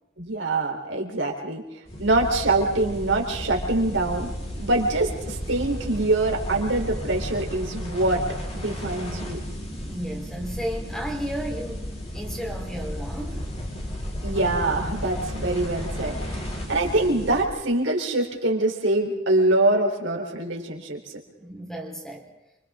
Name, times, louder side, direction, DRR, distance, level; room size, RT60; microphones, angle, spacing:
voice 1, 0.2-1.6 2.0-4.3 4.6-8.2 8.5-9.4 14.2-16.4 16.7-21.0, right 2 dB, 85° right, 2 dB, 3.8 m, -24 dB
sound 1, 1.9-17.4, equal, 35° left, 4.6 m, -33 dB
voice 2, 9.8-13.4 21.4-22.3, equal, 5° left, 1 dB, 3.8 m, -33 dB
28.5 x 25.5 x 3.7 m, 0.96 s
head